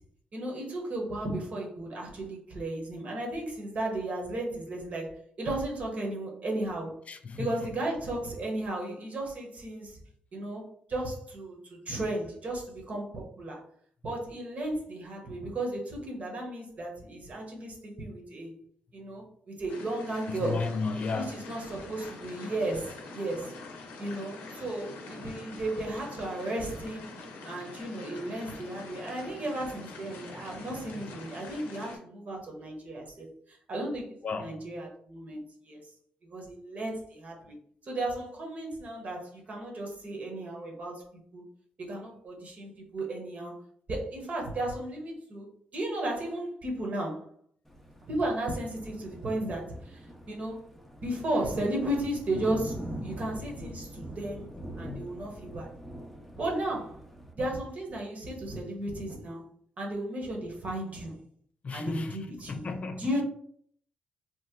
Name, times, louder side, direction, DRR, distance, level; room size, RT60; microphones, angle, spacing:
voice 1, 0.3-7.0 7.3-10.0 10.3-10.6 10.9-13.6 14.0-18.5 18.9-20.7 21.1-23.5 24.0-27.1 27.4-35.8 36.3-37.6 37.8-41.0 41.3-41.4 41.8-43.5 43.9-45.5 45.7-47.3 48.1-50.6 51.0-54.5 54.8-55.7 56.4-57.0 57.3-59.5 59.8-61.1 61.7-62.7 63.0-63.2, right 1 dB, 50° right, 1.1 m, -34 dB
voice 2, 7.1-7.7 20.3-21.3 34.2-34.6 61.6-62.2 62.5-63.1, left 4 dB, 45° left, 0.4 m, -33 dB
sound 1, 19.7-32.0, left 3 dB, 85° left, 0.7 m, -45 dB
Thunder, 47.7-57.3, equal, 5° left, 0.6 m, -43 dB
3.0 x 2.1 x 3.6 m
cardioid pair, 80°, 3 cm